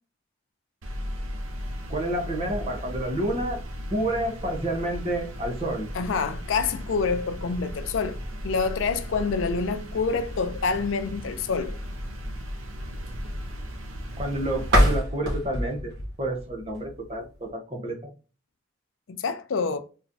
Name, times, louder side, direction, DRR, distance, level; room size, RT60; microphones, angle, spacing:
sound 1, 0.8-15.0, equal, 75° right, 0.7 m, -36 dB
voice 1, 1.9-3.6 3.9-5.9 14.2-15.9 16.2-18.0, right 1 dB, 30° right, 0.8 m, -29 dB
voice 2, 5.9-8.2 8.4-11.8 19.1-19.8, left 5 dB, 65° left, 0.4 m, -27 dB
sound 2, 14.6-17.5, equal, 50° right, 1.2 m, -25 dB
3.6 x 3.0 x 2.6 m
head